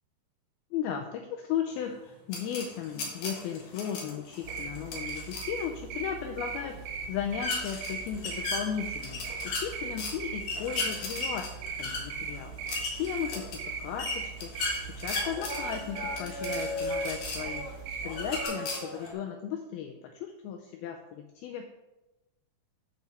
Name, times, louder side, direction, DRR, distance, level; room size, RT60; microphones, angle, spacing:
voice 1, 0.7-6.8 7.1-11.5 11.8-17.7 18.0-21.6, left 9 dB, 80° left, 3 dB, 2.2 m, -36 dB
sound 1, 1.7-19.1, equal, 15° left, 3.0 m, -43 dB
sound 2, 2.3-5.6 7.4-10.1 10.4-17.6 18.1-19.1, left 3 dB, 55° left, 2.1 m, -36 dB
sound 3, 4.4-18.5, right 5 dB, 75° right, 2.7 m, -39 dB
9.2 x 5.7 x 4.3 m, 0.99 s
omnidirectional pair, 4.9 m